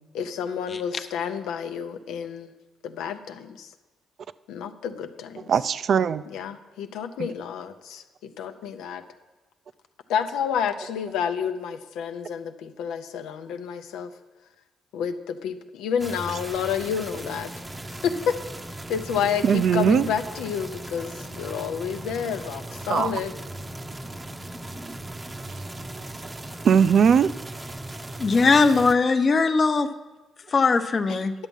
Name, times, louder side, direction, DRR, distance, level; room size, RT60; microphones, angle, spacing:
voice 1, 0.1-2.5 2.8-3.7 4.5-5.5 6.3-9.0 10.1-14.1 14.9-17.5 18.0-18.4 18.9-23.4, left 7 dB, 90° left, 8 dB, 0.7 m, -29 dB
voice 2, 5.5-6.2 7.2-7.3 19.4-20.1 22.9-23.2 26.6-27.3, right 7 dB, 60° right, 15 dB, 0.4 m, -19 dB
sound 1, 16.0-28.9, right 1 dB, 20° right, 0.7 m, -38 dB
voice 3, 28.2-29.9 30.5-31.3, left 4 dB, 40° left, 9 dB, 0.7 m, -20 dB
10.5 x 7.3 x 5.4 m, 1.2 s
cardioid pair, 90°, 0 cm